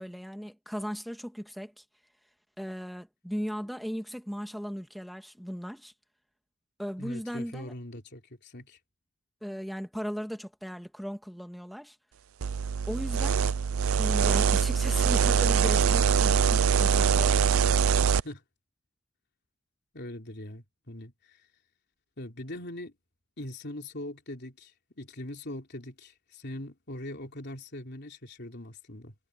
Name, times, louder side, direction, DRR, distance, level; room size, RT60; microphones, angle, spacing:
voice 1, 0.0-1.8 2.6-5.9 6.8-7.7 9.4-12.0 12.9-13.5 14.0-17.4, equal, ahead, 1.9 m, -37 dB
voice 2, 7.0-8.8 18.0-18.4 19.9-21.4 22.2-22.9 23.4-24.7 25.0-29.1, left 1 dB, 55° left, 3.5 m, -41 dB
sound 1, 12.4-18.2, right 6 dB, 80° right, 0.5 m, -23 dB
head